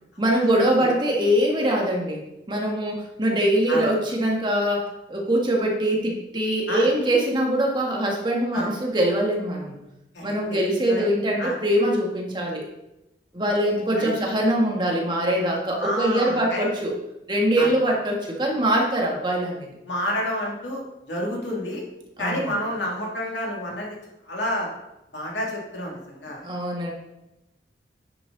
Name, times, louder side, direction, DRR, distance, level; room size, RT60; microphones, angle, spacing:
voice 1, 0.2-2.2 2.5-9.8 10.2-12.6 13.3-16.9 17.3-19.7 22.2-22.5 26.4-26.9, right 1 dB, 25° right, -1 dB, 1.6 m, -23 dB
voice 2, 10.1-10.6 10.9-11.0 11.4-11.5 14.0-14.1 15.8-16.7 17.6-17.7 19.9-21.8 22.2-24.0 24.2-24.7 25.1-26.5, equal, 90° left, -2 dB, 2.7 m, -29 dB
9.8 x 6.1 x 4.0 m, 0.92 s
head